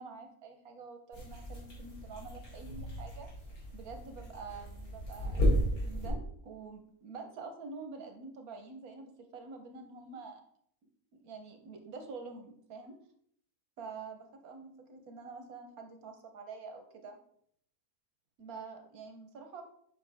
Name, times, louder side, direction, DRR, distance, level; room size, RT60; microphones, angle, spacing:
voice 1, 0.0-3.3 3.7-10.4 11.1-13.0 13.8-17.2 18.4-19.6, right 4 dB, 80° right, 5 dB, 1.5 m, -47 dB
sound 1, 1.1-6.1, equal, 85° left, 3.0 m, -34 dB
7.6 x 5.9 x 3.4 m, 0.66 s
omnidirectional pair, 1.5 m